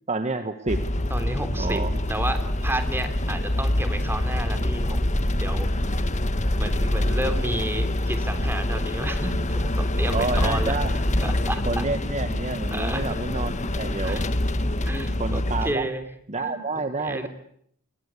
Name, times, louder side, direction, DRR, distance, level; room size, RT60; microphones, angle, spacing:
voice 1, 0.1-0.8 1.6-1.9 10.1-11.0 11.6-14.2 14.8-14.9 15.2-15.9 16.3-17.3, right 3 dB, 35° right, 8 dB, 1.4 m, -29 dB
sound 1, 0.7-15.7, left 1 dB, 35° left, 1.6 m, -25 dB
voice 2, 1.1-1.8 2.1-5.7 6.0-6.1 6.6-10.7 11.2-11.8 12.7-13.2 14.0-14.3 14.8-16.0 16.4-17.3, right 1 dB, 10° right, 8 dB, 3.4 m, -32 dB
29.5 x 22.0 x 8.4 m, 0.70 s
head